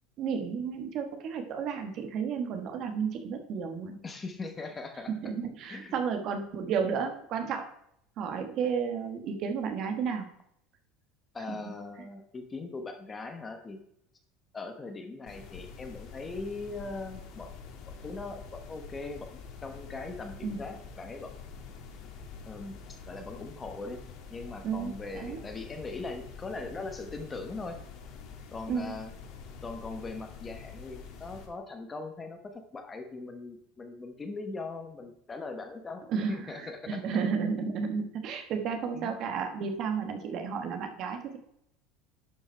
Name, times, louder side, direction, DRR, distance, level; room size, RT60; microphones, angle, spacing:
voice 1, 0.2-4.0 5.1-7.7 8.2-10.3 11.5-11.6 20.4-20.6 24.6-25.4 28.7-29.0 36.1-41.4, right 6 dB, 45° right, 6 dB, 1.2 m, -32 dB
voice 2, 4.0-5.1 5.7-5.9 11.3-13.8 14.5-17.5 17.9-21.4 22.5-24.0 24.3-27.8 28.5-29.1 29.6-37.0 37.6-37.7 38.9-39.2, left 3 dB, 15° left, 6 dB, 1.0 m, -40 dB
sound 1, 15.3-31.5, left 5 dB, 50° left, 1.5 m, -46 dB
11.0 x 5.3 x 4.5 m, 0.74 s
cardioid pair, 150°, 0 cm